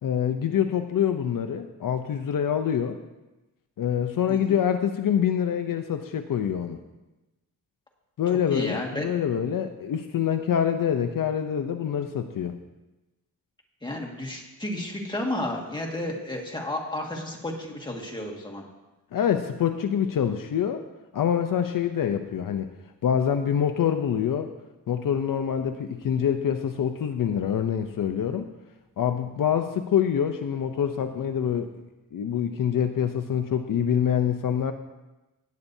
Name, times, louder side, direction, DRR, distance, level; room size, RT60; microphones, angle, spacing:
voice 1, 0.0-3.0 3.8-6.8 8.2-12.6 19.1-20.9 21.1-22.7 23.0-24.5 24.9-28.5 29.0-31.7 32.1-34.7, left 8 dB, 65° left, 7 dB, 0.7 m, -25 dB
voice 2, 8.5-9.1 13.8-18.6, left 1 dB, 15° left, 0 dB, 1.8 m, -32 dB
17.0 x 9.3 x 2.7 m, 1.0 s
wide cardioid pair, 145°, 36 cm